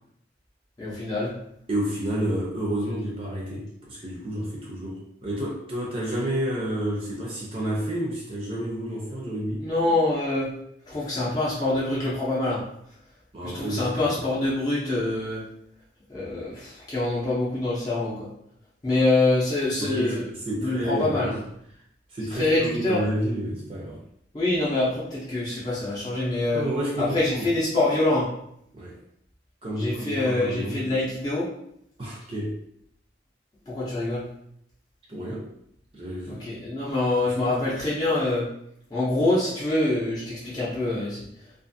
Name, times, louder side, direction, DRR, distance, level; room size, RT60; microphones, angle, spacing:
voice 1, 0.8-1.3 9.6-10.5 10.9-12.6 13.5-15.4 16.1-18.3 18.8-20.3 20.6-21.3 22.3-23.0 24.3-26.6 27.0-28.3 29.8-31.5 33.7-34.3 36.3-38.5 38.9-41.3, left 2 dB, 20° left, -9 dB, 0.6 m, -25 dB
voice 2, 1.7-9.6 13.3-14.2 19.8-20.2 20.5-21.4 22.1-24.0 26.5-27.5 28.7-29.0 29.6-30.8 32.0-32.6 35.1-35.5 35.9-36.4 37.2-37.7, right 1 dB, 30° right, -3 dB, 0.5 m, -30 dB
2.4 x 2.4 x 2.6 m, 0.74 s
head